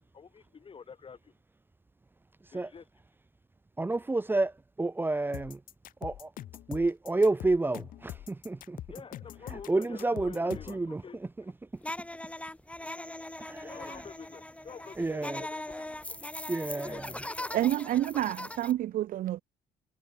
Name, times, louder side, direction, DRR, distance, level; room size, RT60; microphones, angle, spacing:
voice 1, 0.0-1.3 2.5-2.9 8.9-11.2 13.6-16.2 16.7-17.7, left 6 dB, 35° left, 4.8 m, -48 dB
voice 2, 3.8-5.6 6.0-6.3 6.7-8.8 9.5-11.3 13.4-13.9 15.0-15.4 16.5-17.1, right 2 dB, 15° right, 0.6 m, -30 dB
sound 1, 5.3-10.8, left 13 dB, 60° left, 1.0 m, -43 dB
sound 2, 11.8-18.7, left 1 dB, 10° left, 5.4 m, -40 dB
voice 3, 17.5-19.4, right 13 dB, 60° right, 1.0 m, -28 dB
cardioid pair, 95°, 16 cm